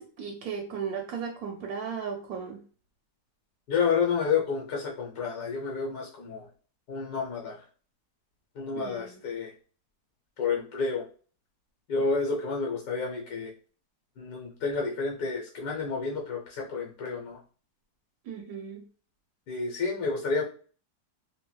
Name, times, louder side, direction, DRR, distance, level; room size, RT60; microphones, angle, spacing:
voice 1, 0.0-2.6 8.8-9.2 18.3-18.8, right 6 dB, 75° right, 2 dB, 1.0 m, -36 dB
voice 2, 3.7-6.5 6.9-7.6 8.5-9.5 10.4-11.0 11.9-13.5 14.2-17.4 19.5-20.4, left 5 dB, 80° left, -1 dB, 1.3 m, -30 dB
4.0 x 2.1 x 2.2 m, 0.40 s
omnidirectional pair, 1.7 m